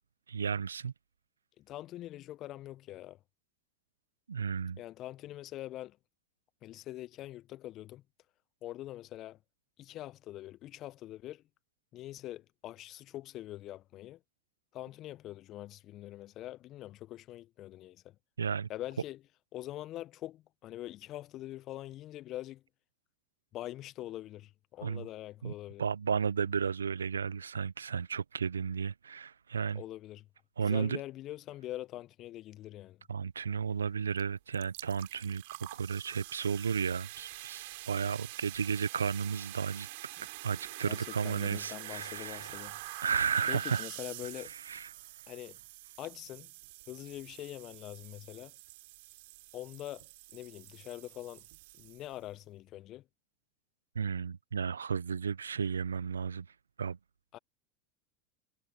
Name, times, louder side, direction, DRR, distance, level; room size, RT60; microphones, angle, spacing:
voice 1, 0.3-0.9 4.3-4.8 18.4-18.7 24.8-25.1 25.4-25.5 25.8-29.8 30.6-31.0 33.1-39.9 40.4-43.9 44.5-44.9 53.9-56.5 56.8-57.0, right 6 dB, 85° right, 1.1 m, -33 dB
voice 2, 1.6-3.2 4.8-6.0 6.6-8.0 8.6-9.4 9.8-11.4 11.9-14.2 14.7-18.1 18.7-19.2 19.5-22.6 23.5-25.8 29.7-30.3 30.6-33.0 40.2-40.3 40.8-43.0 43.5-44.5 45.3-45.6 46.0-46.5 46.9-48.5 49.5-50.0 50.3-51.4 51.7-53.0 57.3-57.4, left 14 dB, 45° left, 1.2 m, -44 dB
sound 1, 34.2-34.3 34.5-52.3, right 21 dB, 60° right, 4.6 m, -47 dB
figure-of-eight pair, 85°, 0 cm